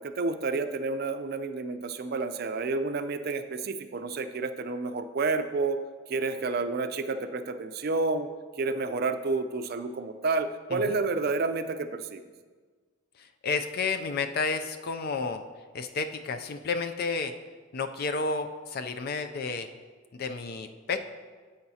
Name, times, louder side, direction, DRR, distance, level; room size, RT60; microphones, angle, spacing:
voice 1, 0.0-5.8 6.1-8.3 8.6-12.2, right 3 dB, 50° right, 9 dB, 0.5 m, -30 dB
voice 2, 13.4-15.4 15.7-17.3 17.7-19.7 20.1-21.0, left 4 dB, 50° left, 8 dB, 0.4 m, -31 dB
10.5 x 8.1 x 2.8 m, 1.5 s
head